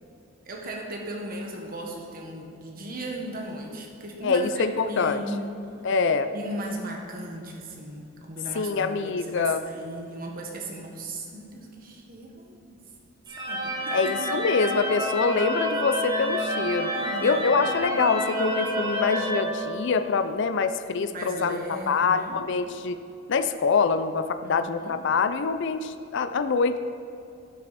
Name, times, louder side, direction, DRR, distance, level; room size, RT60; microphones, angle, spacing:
voice 1, 0.4-5.6 6.3-12.8 13.4-14.6 16.9-17.6 21.1-22.4 24.4-25.0, right 1 dB, 45° right, 0 dB, 1.5 m, -37 dB
voice 2, 4.2-5.2 5.8-6.3 8.5-9.6 13.9-16.9 17.2-21.6 21.9-23.0 23.3-26.8, left 4 dB, 65° left, 10 dB, 0.5 m, -25 dB
sound 1, 13.3-20.3, equal, 20° right, 2.0 m, -29 dB
12.0 x 7.5 x 4.2 m, 2.7 s
head